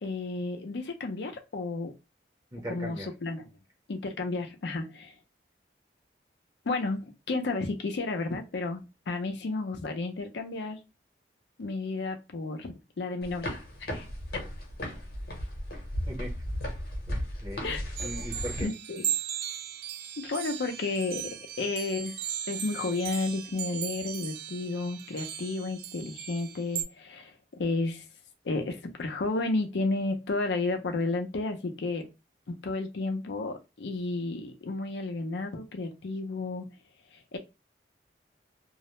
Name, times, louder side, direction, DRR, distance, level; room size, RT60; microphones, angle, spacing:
voice 1, 0.0-1.9 2.7-3.4 3.9-5.2 6.7-10.8 11.6-14.1 17.6-17.8 18.6-19.0 20.2-21.3 21.6-22.2 22.5-28.1 28.4-32.1 32.5-36.7 37.1-37.4, left 3 dB, 75° left, 0.5 m, -32 dB
voice 2, 2.5-3.1 16.1-16.5 17.1-18.7, equal, 20° right, 0.6 m, -39 dB
sound 1, 13.2-18.6, equal, 55° left, 0.8 m, -35 dB
sound 2, 18.0-26.8, right 10 dB, 55° right, 0.3 m, -37 dB
2.3 x 2.0 x 2.9 m
head